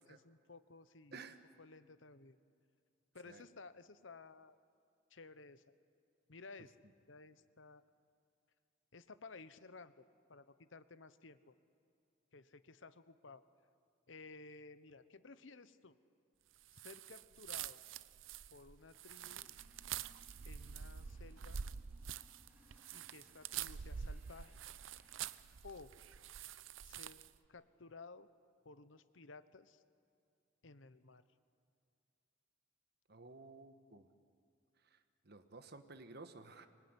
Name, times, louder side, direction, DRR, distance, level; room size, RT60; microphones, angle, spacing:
voice 1, 0.1-1.2 1.6-2.4 3.1-4.6 5.1-5.6 6.3-6.8 7.1-7.8 8.9-10.0 10.3-11.5 12.3-13.4 14.1-16.0 16.7-17.8 18.5-19.5 20.4-21.6 22.9-24.6 25.6-25.9 26.8-27.2 27.5-28.3 28.6-29.8 30.6-31.2, left 3 dB, 80° left, 14 dB, 1.0 m, -56 dB
sound 1, 16.7-27.4, right 8 dB, 85° right, 0.6 m, -47 dB
Male speech man speaking / Vehicle / Engine starting, 19.2-25.4, equal, 10° right, 4.5 m, -69 dB
voice 2, 33.1-34.1 35.2-36.7, right 3 dB, 55° right, 9 dB, 1.5 m, -53 dB
24.5 x 20.5 x 9.8 m, 2.4 s
head